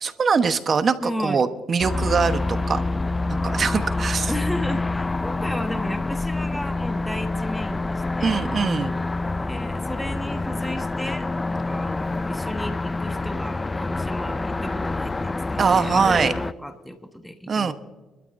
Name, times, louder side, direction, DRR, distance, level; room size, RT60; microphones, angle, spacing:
voice 1, 0.0-2.8 3.4-4.3 8.2-8.9 15.6-16.3 17.5-17.7, right 5 dB, 45° right, 10 dB, 1.0 m, -22 dB
voice 2, 1.0-1.4 4.3-8.5 9.3-17.7, equal, 5° left, 6 dB, 1.3 m, -34 dB
sound 1, 1.8-16.5, left 2 dB, 20° left, 0.3 m, -27 dB
25.0 x 12.5 x 2.6 m, 1.2 s
cardioid pair, 90°, 0 cm